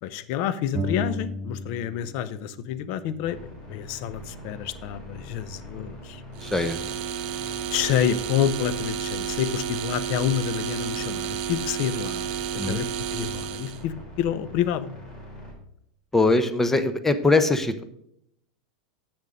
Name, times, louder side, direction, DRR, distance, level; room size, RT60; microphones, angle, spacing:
voice 1, 0.0-6.2 7.7-12.3 12.7-14.9, left 10 dB, 55° left, 14 dB, 0.7 m, -28 dB
sound 1, 0.7-2.3 2.5-4.3, equal, 15° right, 1.8 m, -34 dB
sound 2, 3.2-15.5, left 1 dB, 30° left, 3.6 m, -43 dB
voice 2, 6.4-6.8 12.6-12.8 16.1-17.8, left 3 dB, 10° left, 10 dB, 0.8 m, -22 dB
sound 3, 6.4-13.8, right 9 dB, 50° right, 0.9 m, -31 dB
7.9 x 6.7 x 5.1 m, 0.73 s
hypercardioid pair, 95°, 3 cm